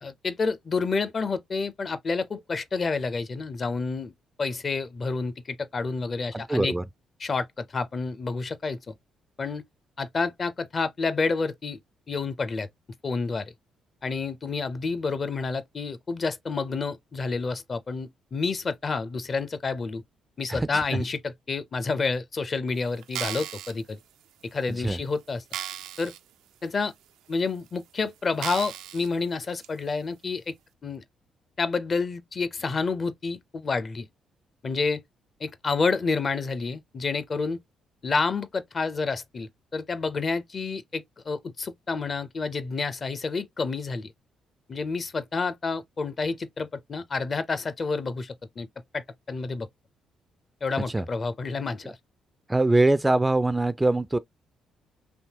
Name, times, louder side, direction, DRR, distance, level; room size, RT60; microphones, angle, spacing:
voice 1, 0.0-4.1 4.4-6.8 7.2-8.9 9.4-9.6 10.0-11.8 12.1-12.7 13.0-13.5 14.0-20.0 20.4-24.0 24.4-25.4 26.0-26.1 26.6-26.9 27.3-30.5 30.8-31.0 31.6-34.1 34.6-35.0 35.4-37.6 38.0-44.1 44.7-48.7 48.9-49.7 50.6-52.0, left 4 dB, 40° left, 0.5 m, -29 dB
voice 2, 6.3-6.8 20.5-20.7 24.8-25.0 50.9-51.0 52.5-54.2, right 2 dB, 10° right, 0.3 m, -22 dB
sound 1, 23.0-23.7 24.4-24.5 25.0-25.1 25.5-26.2 26.6-26.7 27.5-27.6 28.4-29.1 29.6-29.7, right 11 dB, 90° right, 0.3 m, -35 dB
3.4 x 2.8 x 2.8 m
cardioid pair, 90°, 0 cm